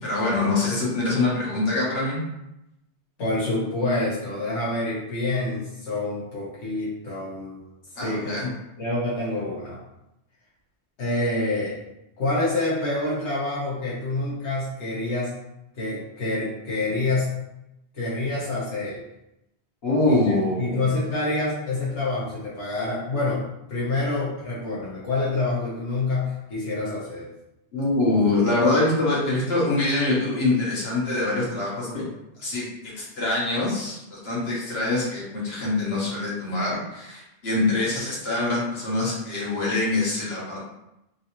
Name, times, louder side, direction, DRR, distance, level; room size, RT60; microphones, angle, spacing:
voice 1, 0.0-2.2 8.0-8.5 19.8-20.9 27.7-32.1 32.4-32.6 32.9-40.6, left 2 dB, 65° left, -6 dB, 1.4 m, -24 dB
voice 2, 3.2-7.7 8.0-8.5 8.8-9.8 11.0-11.8 12.2-15.3 15.7-17.3 17.9-19.0 20.0-20.2 20.6-27.3, left 2 dB, 85° left, -7 dB, 1.3 m, -27 dB
3.8 x 2.6 x 2.9 m, 0.87 s
omnidirectional pair, 1.1 m